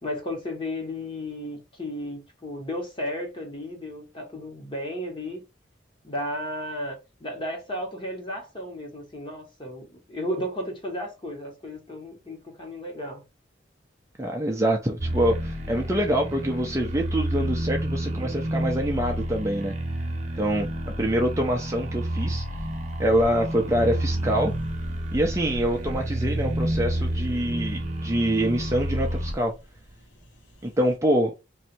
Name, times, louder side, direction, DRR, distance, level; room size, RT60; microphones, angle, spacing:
voice 1, 0.0-5.4 6.0-13.2, left 1 dB, 25° left, 1.4 m, -34 dB
voice 2, 14.2-19.8 20.4-22.4 23.0-24.5 25.1-29.5 30.6-31.3, right 1 dB, 15° right, 0.5 m, -25 dB
sound 1, 15.0-29.3, right 1 dB, 35° right, 1.0 m, -30 dB
sound 2, 22.5-31.0, equal, 70° left, 1.2 m, -43 dB
3.1 x 2.7 x 4.4 m
head